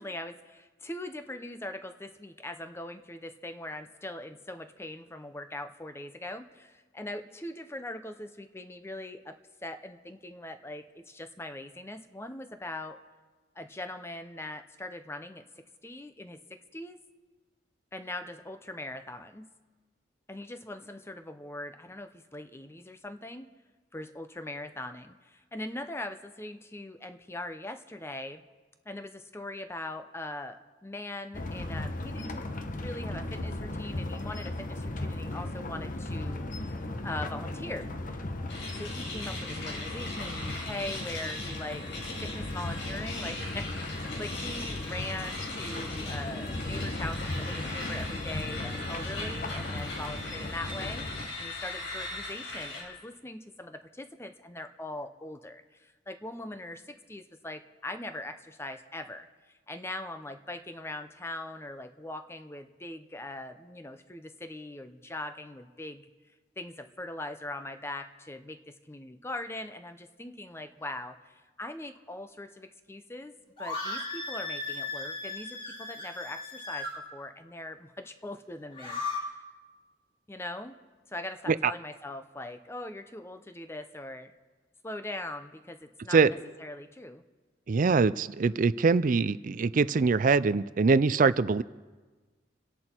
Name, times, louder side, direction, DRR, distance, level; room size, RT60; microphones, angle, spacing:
voice 1, 0.0-13.0 13.6-15.4 15.8-17.0 17.9-19.5 20.3-23.5 23.9-28.4 28.8-36.7 37.0-37.9 38.7-51.1 51.4-56.8 57.1-59.3 59.7-66.0 66.6-68.6 68.9-79.4 80.3-80.8 81.1-84.3 84.8-86.2 86.6-87.2, left 1 dB, 15° left, 8 dB, 0.7 m, -41 dB
sound 1, 31.3-51.3, left 1 dB, 45° left, 1.0 m, -36 dB
sound 2, 38.5-52.8, left 2 dB, 85° left, 5.2 m, -40 dB
sound 3, 73.6-77.0 78.6-79.2, left 3 dB, 30° left, 4.0 m, -36 dB
voice 2, 87.7-91.6, right 4 dB, 45° right, 17 dB, 0.4 m, -23 dB
27.5 x 10.5 x 4.5 m, 1.3 s
head